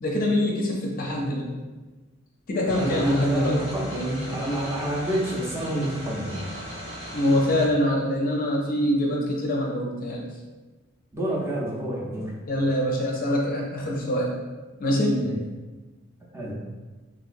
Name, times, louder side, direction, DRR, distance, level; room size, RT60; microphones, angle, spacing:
voice 1, 0.0-1.5 2.5-3.6 7.1-10.2 12.5-14.3 14.8-15.2, left 1 dB, 45° left, -1 dB, 0.5 m, -24 dB
voice 2, 2.6-6.5 11.1-12.4 15.2-15.4 16.3-16.6, right 1 dB, 10° right, -5 dB, 0.5 m, -28 dB
sound 1, 2.7-7.7, equal, 80° right, 0.9 m, -37 dB
3.0 x 2.8 x 2.5 m, 1.2 s
head